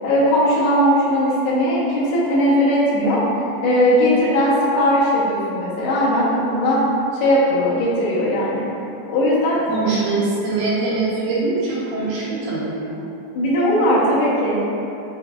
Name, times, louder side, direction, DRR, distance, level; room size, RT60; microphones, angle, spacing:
voice 1, 0.0-3.2 3.6-6.8 7.1-8.6 9.1-9.6 13.4-14.6, equal, 80° left, -8 dB, 3.0 m, -18 dB
voice 2, 9.7-13.0, right 3 dB, 80° right, -7 dB, 2.4 m, -23 dB
6.9 x 3.2 x 2.3 m, 2.8 s
omnidirectional pair, 4.9 m